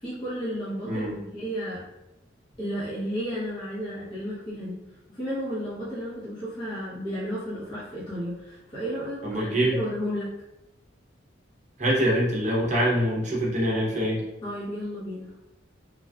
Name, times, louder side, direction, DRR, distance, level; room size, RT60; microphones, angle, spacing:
voice 1, 0.0-1.8 2.6-4.8 5.1-10.3 14.4-15.3, equal, 25° left, -11 dB, 0.8 m, -33 dB
voice 2, 9.2-9.8 11.8-14.2, equal, 40° right, -4 dB, 0.8 m, -24 dB
3.3 x 2.3 x 2.3 m, 0.91 s
head